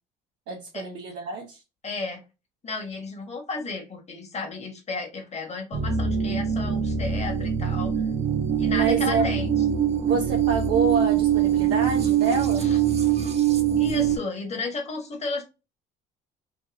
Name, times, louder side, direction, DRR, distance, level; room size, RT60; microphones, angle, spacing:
voice 1, 0.5-1.6 8.7-9.3 10.0-12.7, right 4 dB, 75° right, 0.7 m, -28 dB
voice 2, 1.8-2.2 2.6-7.9 8.6-9.5 12.6-12.8 13.8-15.4, left 3 dB, 35° left, 1.2 m, -33 dB
sound 1, 5.7-14.2, right 9 dB, 35° right, 0.6 m, -23 dB
3.0 x 2.6 x 2.3 m
supercardioid pair, 70°, 20 cm